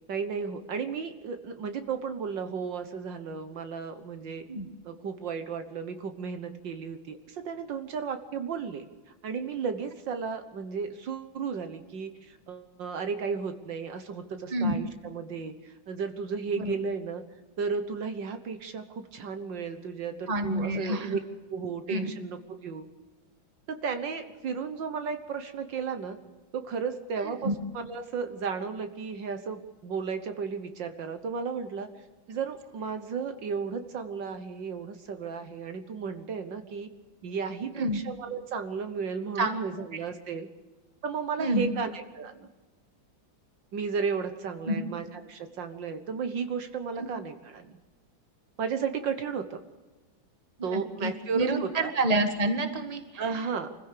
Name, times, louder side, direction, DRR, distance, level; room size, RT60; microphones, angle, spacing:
voice 1, 0.1-4.4 4.8-8.9 9.2-17.2 17.6-21.2 21.5-22.9 23.7-26.2 26.5-31.9 32.3-36.9 37.2-40.5 41.0-42.5 43.7-47.8 48.6-49.6 50.6-51.9 53.2-53.8, right 5 dB, 70° right, 8 dB, 1.9 m, -34 dB
voice 2, 20.3-21.1 21.9-22.1 27.4-27.5 37.7-38.0 39.4-39.6 41.4-41.7 44.7-44.8 47.0-47.1 50.7-53.2, right 1 dB, 20° right, 7 dB, 1.7 m, -28 dB
25.5 x 15.5 x 6.7 m, 1.2 s
omnidirectional pair, 2.1 m